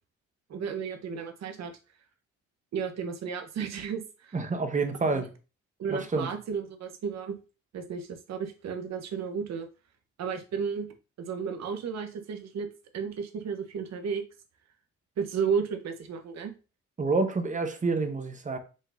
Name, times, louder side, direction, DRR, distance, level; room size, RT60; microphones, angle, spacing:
voice 1, 0.5-1.7 2.7-4.5 5.0-5.3 5.8-7.4 7.7-9.7 10.2-10.9 11.2-12.7 12.9-14.2 15.2-16.5, right 6 dB, 60° right, 1.0 m, -33 dB
voice 2, 4.3-5.3 5.9-6.3 17.0-18.6, right 3 dB, 25° right, 1.0 m, -28 dB
5.2 x 3.8 x 2.6 m
supercardioid pair, 65°, 30 cm